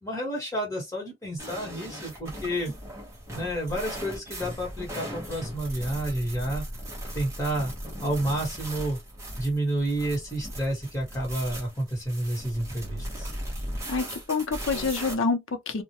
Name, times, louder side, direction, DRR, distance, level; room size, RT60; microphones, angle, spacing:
voice 1, 0.0-2.7 3.3-6.6 7.1-7.7 8.0-9.0 9.4-13.3, right 1 dB, 15° left, 1.3 m, -30 dB
sound 1, 1.4-15.1, equal, 15° right, 0.8 m, -38 dB
voice 2, 13.9-15.8, left 4 dB, 85° left, 0.6 m, -27 dB
2.3 x 2.2 x 2.8 m
head